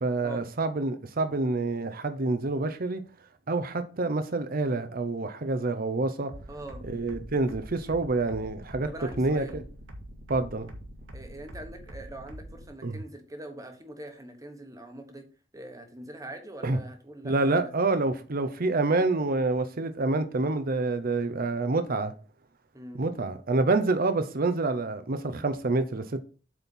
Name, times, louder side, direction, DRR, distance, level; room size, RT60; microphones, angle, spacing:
voice 1, 0.0-3.0 3.5-6.3 6.8-8.9 9.2-9.6 10.3-10.7 12.8-13.0 16.6-16.8 17.2-22.1 23.0-26.2, right 3 dB, 50° right, 0.8 m, -27 dB
sound 1, 6.3-12.6, equal, 75° right, 1.8 m, -44 dB
voice 2, 6.5-6.8 8.9-9.6 11.1-15.3 15.5-17.7 22.7-23.1, right 1 dB, 20° right, 1.3 m, -43 dB
8.1 x 4.4 x 5.4 m
head